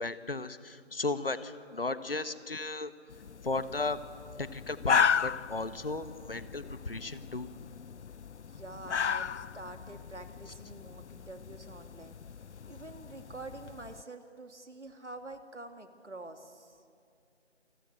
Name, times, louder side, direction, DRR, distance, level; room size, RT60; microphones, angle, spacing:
voice 1, 0.0-2.9 3.4-4.0 4.4-7.5, left 3 dB, 55° left, 13 dB, 1.3 m, -35 dB
sound 1, 3.1-14.0, left 7 dB, 75° left, 0.5 m, -35 dB
voice 2, 8.4-16.8, right 2 dB, 85° right, 7 dB, 2.6 m, -47 dB
28.5 x 20.0 x 7.8 m, 2.4 s
figure-of-eight pair, 175°, 35 cm